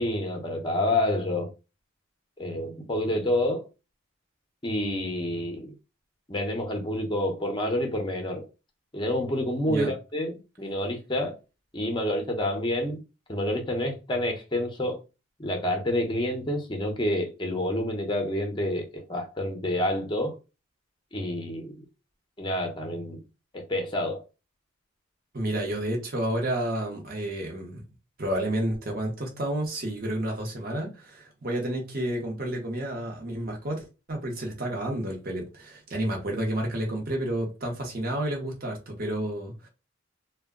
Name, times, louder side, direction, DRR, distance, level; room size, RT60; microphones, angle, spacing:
voice 1, 0.0-1.5 2.4-3.6 4.6-5.7 6.3-8.4 8.9-11.4 11.7-13.0 13.3-15.0 15.4-20.3 21.1-21.8 22.4-23.2 23.5-24.2, left 1 dB, 20° left, 0.6 m, -28 dB
voice 2, 25.3-27.8 28.2-39.7, right 1 dB, 45° right, 0.8 m, -30 dB
2.2 x 2.0 x 3.5 m
head